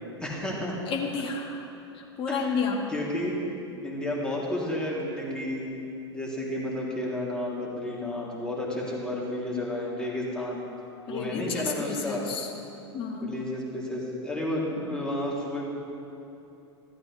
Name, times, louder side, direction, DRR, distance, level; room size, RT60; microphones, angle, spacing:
voice 1, 0.2-0.8 2.3-2.5 2.9-3.4 3.8-5.7 6.1-10.7 11.1-12.2 13.2-15.7, left 1 dB, 5° left, -5 dB, 2.9 m, -31 dB
voice 2, 0.9-1.7 1.9-2.9 11.1-12.5 12.9-13.4, left 5 dB, 35° left, 0 dB, 1.5 m, -31 dB
14.5 x 12.5 x 3.2 m, 2.9 s
hypercardioid pair, 95°, 15 cm